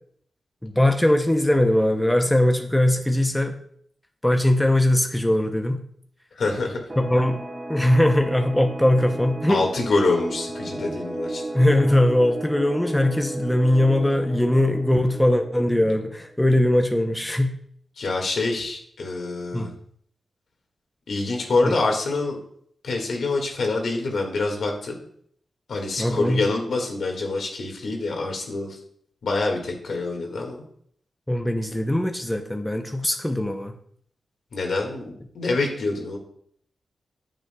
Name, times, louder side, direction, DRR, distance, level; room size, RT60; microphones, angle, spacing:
voice 1, 0.6-3.6 4.2-5.8 7.0-7.4 7.7-9.7 11.5-17.5 19.5-19.7 21.6-21.7 26.0-26.4 31.3-33.7, left 1 dB, 5° left, 5 dB, 0.6 m, -20 dB
voice 2, 6.3-6.9 9.5-11.4 18.0-19.7 21.1-22.4 22.8-24.9 25.7-28.8 29.2-30.6 34.5-36.2, left 3 dB, 80° left, 2 dB, 1.8 m, -26 dB
sound 1, 6.9-16.2, right 1 dB, 35° right, 1.6 m, -34 dB
9.3 x 7.4 x 2.3 m, 0.64 s
wide cardioid pair, 105°, 0 cm